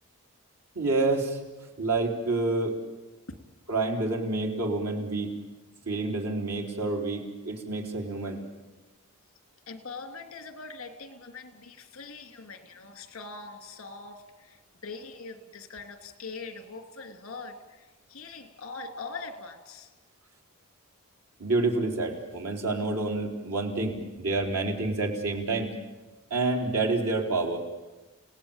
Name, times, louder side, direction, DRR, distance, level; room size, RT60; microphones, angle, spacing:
voice 1, 0.7-1.4 1.8-2.8 3.7-5.3 5.9-8.4 21.4-25.7 26.3-27.6, right 3 dB, 90° right, 1 dB, 4.1 m, -28 dB
voice 2, 9.7-19.9, left 4 dB, 65° left, 7 dB, 2.8 m, -42 dB
30.0 x 18.0 x 8.9 m, 1.2 s
head